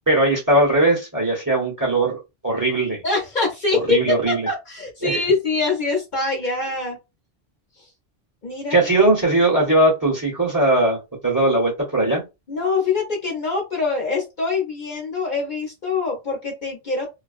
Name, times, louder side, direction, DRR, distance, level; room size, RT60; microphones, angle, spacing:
voice 1, 0.1-3.0 3.9-4.5 5.0-5.2 8.7-12.2, right 2 dB, 20° right, -2 dB, 0.9 m, -19 dB
voice 2, 3.0-7.0 8.4-8.8 12.5-17.1, left 4 dB, 50° left, -1 dB, 0.9 m, -24 dB
2.4 x 2.2 x 2.4 m, 0.24 s
omnidirectional pair, 1.1 m